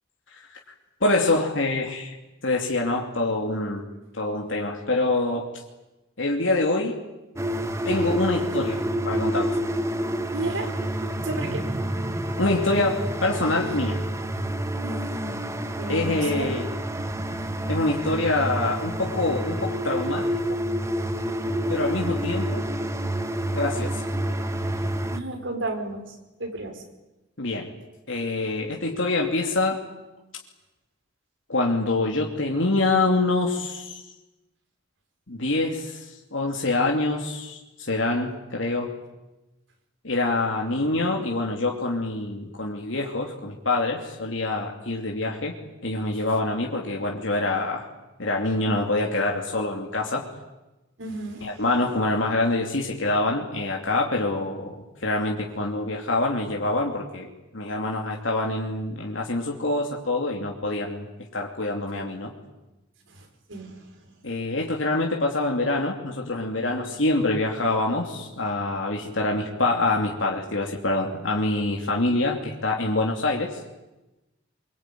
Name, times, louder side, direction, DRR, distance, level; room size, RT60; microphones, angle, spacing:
voice 1, 1.0-2.2 2.4-3.9 4.1-5.5 6.2-7.0 7.8-9.6 12.4-14.0 15.9-16.6 17.7-20.3 21.7-22.7 23.5-24.0 27.4-27.7 28.1-29.8 31.5-34.0 35.3-38.9 40.0-45.5 45.8-47.9 48.2-50.3 51.4-54.7 55.0-61.1 61.3-62.3 64.2-73.6, left 2 dB, 75° left, 0 dB, 2.9 m, -25 dB
sound 1, 7.4-25.2, right 1 dB, 15° right, 1.4 m, -28 dB
voice 2, 10.3-11.7 14.8-15.5 15.8-16.5 24.7-24.8 25.1-26.8 51.0-51.6 63.1-64.2, right 2 dB, 75° right, 3 dB, 5.2 m, -34 dB
24.5 x 24.0 x 9.4 m, 1.0 s
head